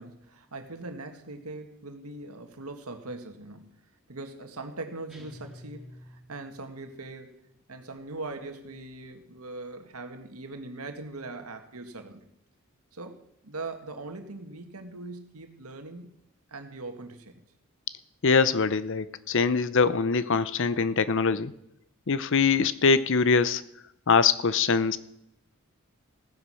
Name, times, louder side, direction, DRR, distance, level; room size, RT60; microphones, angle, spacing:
voice 1, 0.0-3.8 4.1-7.4 7.7-12.3 12.9-16.1 16.5-17.4, right 2 dB, 80° right, 6 dB, 1.9 m, -41 dB
sound 1, 5.1-6.8, left 1 dB, ahead, 2.1 m, -48 dB
voice 2, 18.2-21.5 22.1-23.6 24.1-25.0, left 5 dB, 60° left, 15 dB, 0.7 m, -23 dB
15.5 x 9.9 x 6.4 m, 0.78 s
head